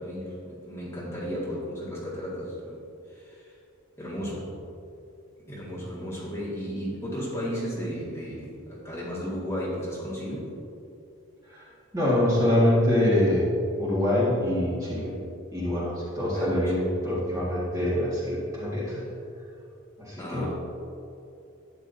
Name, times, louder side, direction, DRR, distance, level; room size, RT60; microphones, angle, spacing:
voice 1, 0.0-2.8 3.1-3.5 4.0-4.5 5.5-10.5 16.3-16.7 20.2-20.5, equal, 10° left, -8 dB, 1.9 m, -34 dB
voice 2, 11.9-13.5 13.8-15.1 15.5-19.0 20.0-20.5, left 1 dB, 15° right, -8 dB, 1.8 m, -25 dB
12.0 x 9.0 x 2.7 m, 2.6 s
head